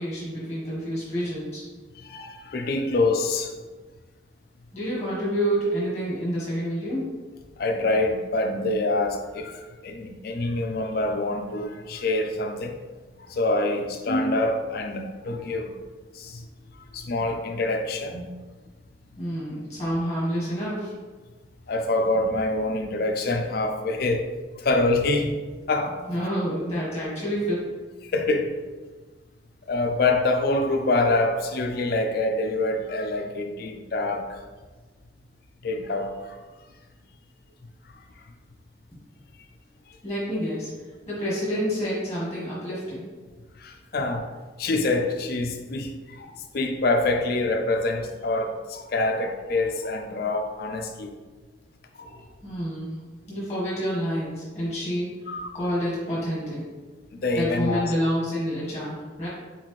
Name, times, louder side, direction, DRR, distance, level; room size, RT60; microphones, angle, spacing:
voice 1, 0.0-1.6 4.7-7.1 19.2-20.9 26.1-27.6 40.0-40.7 41.1-43.0 52.0-52.2 52.4-52.9 53.3-56.6 57.3-59.3, equal, 15° left, 1.3 m, -28 dB
voice 2, 1.9-3.5 7.6-12.8 13.2-15.7 16.1-16.5 16.7-18.3 21.7-25.4 25.7-26.0 28.0-28.6 29.7-34.4 35.6-36.4 37.9-38.0 43.6-51.1 52.0-52.2 55.3-55.6 57.1-57.9, left 2 dB, 50° left, 0.4 m, -26 dB
4.1 x 3.9 x 3.1 m
head